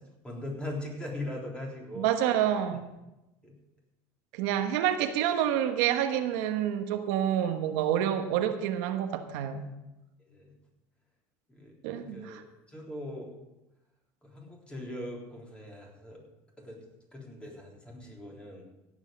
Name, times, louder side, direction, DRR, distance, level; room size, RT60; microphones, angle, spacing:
voice 1, 0.2-2.1 3.4-3.5 10.3-10.5 11.5-12.4 12.7-13.3 14.2-16.2 16.6-16.8 17.1-18.6, left 1 dB, 15° left, -1 dB, 3.8 m, -40 dB
voice 2, 2.0-2.9 4.3-9.7 11.8-12.4, right 10 dB, 80° right, 7 dB, 1.1 m, -28 dB
17.0 x 8.1 x 5.2 m, 0.97 s
supercardioid pair, 125°, 9 cm